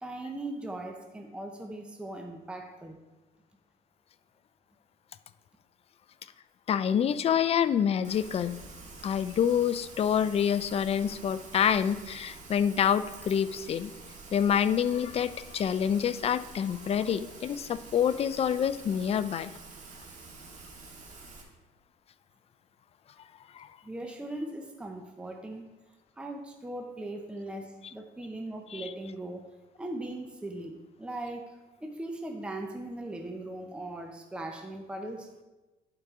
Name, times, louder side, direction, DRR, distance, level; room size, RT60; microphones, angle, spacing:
voice 1, 0.0-3.0 23.8-25.7 26.2-35.3, right 1 dB, 5° right, 4 dB, 0.7 m, -39 dB
voice 2, 6.7-8.6 9.0-13.9 14.3-19.5 23.5-23.7 28.7-28.9, left 8 dB, 35° left, 13 dB, 0.4 m, -27 dB
Rain, 8.0-21.4, right 3 dB, 45° right, 1.6 m, -48 dB
11.0 x 4.8 x 3.7 m, 1.1 s
cardioid pair, 110°, 17 cm